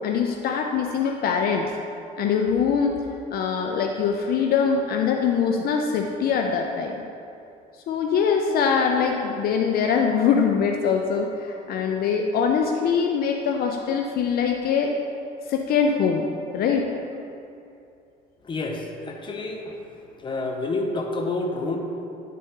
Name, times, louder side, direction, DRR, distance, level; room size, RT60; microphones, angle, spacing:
voice 1, 0.0-1.7 2.2-3.1 3.3-7.0 7.9-14.9 15.5-16.3 16.5-16.9, left 6 dB, 65° left, 2 dB, 0.5 m, -23 dB
voice 2, 18.4-19.7 20.2-21.8, left 2 dB, 30° left, 1 dB, 0.9 m, -28 dB
10.5 x 4.2 x 3.7 m, 2.6 s
cardioid pair, 110°, 17 cm